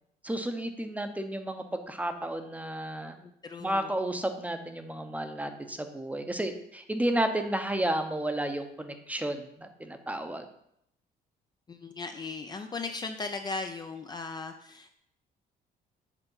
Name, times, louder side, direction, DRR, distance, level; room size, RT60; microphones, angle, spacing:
voice 1, 0.2-3.2 3.6-10.5, right 1 dB, 10° right, 7 dB, 0.7 m, -32 dB
voice 2, 3.2-3.9 11.7-14.9, left 3 dB, 25° left, 6 dB, 0.5 m, -37 dB
8.1 x 3.4 x 5.5 m, 0.75 s
cardioid pair, 110°, 17 cm